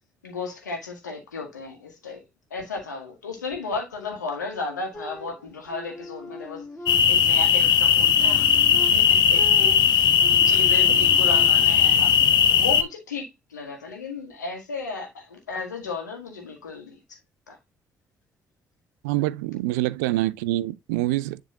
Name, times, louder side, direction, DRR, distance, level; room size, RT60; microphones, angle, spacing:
voice 1, 0.2-2.2 2.5-6.7 7.1-10.1 10.5-12.2 12.5-17.0 17.5-17.6, left 4 dB, 85° left, 1.6 m, -34 dB
sound 1, 4.9-7.5 7.9-11.9, left 2 dB, 10° left, 1.6 m, -41 dB
sound 2, 6.9-12.8, left 8 dB, 55° left, 0.8 m, -18 dB
voice 2, 19.0-21.4, right 17 dB, 70° right, 0.4 m, -26 dB
10.0 x 3.5 x 2.8 m
figure-of-eight pair, 45°, 9 cm